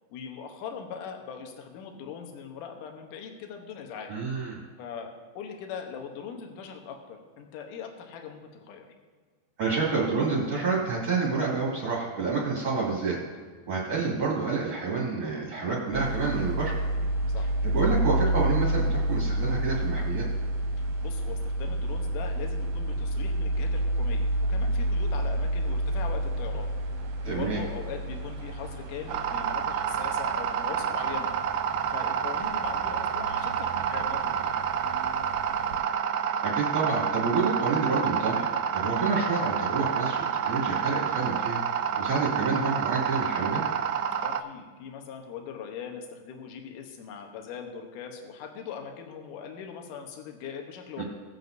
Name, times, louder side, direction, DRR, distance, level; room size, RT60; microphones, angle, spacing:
voice 1, 0.1-4.1 4.8-8.9 17.3-17.5 20.8-26.7 27.2-31.3 31.9-34.6 44.2-51.0, left 7 dB, 75° left, 3 dB, 2.0 m, -40 dB
voice 2, 4.1-4.6 9.6-13.2 13.7-16.7 17.6-20.2 27.2-27.6 36.4-38.5 38.7-41.6 42.0-43.6 51.0-51.1, right 4 dB, 40° right, -7 dB, 3.0 m, -28 dB
sound 1, 15.9-35.8, right 1 dB, 60° right, 2.8 m, -30 dB
sound 2, 29.1-44.4, right 8 dB, 85° right, 2.4 m, -29 dB
19.5 x 7.8 x 2.7 m, 1.5 s
omnidirectional pair, 5.2 m